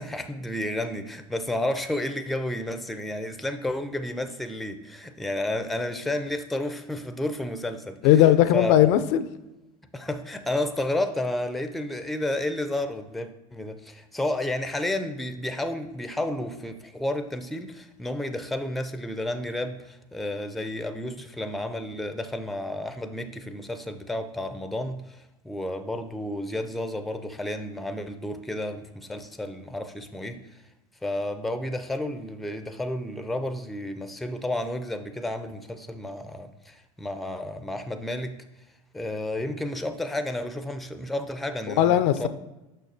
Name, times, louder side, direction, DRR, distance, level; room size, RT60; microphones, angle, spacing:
voice 1, 0.0-8.0 8.5-8.9 9.9-30.4 31.0-38.3 38.9-42.3, left 1 dB, ahead, 0.4 m, -31 dB
voice 2, 8.0-9.3 41.7-42.3, left 12 dB, 60° left, 0.4 m, -18 dB
6.6 x 5.7 x 2.7 m
hypercardioid pair, 90°, 19 cm